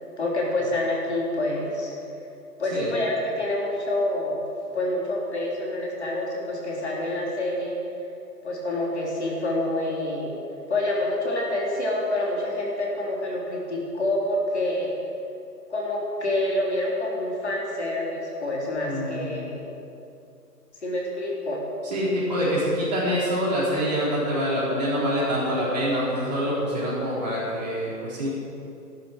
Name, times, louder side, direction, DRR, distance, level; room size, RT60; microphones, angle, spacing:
voice 1, 0.2-1.9 2.6-4.4 4.7-7.8 8.4-10.4 10.7-14.9 15.7-19.7 20.8-21.7, left 1 dB, 40° left, -3 dB, 3.4 m, -27 dB
voice 2, 18.8-19.4 21.8-28.3, equal, 25° right, -7 dB, 4.2 m, -25 dB
13.0 x 12.5 x 6.5 m, 2.7 s
figure-of-eight pair, 165°, 49 cm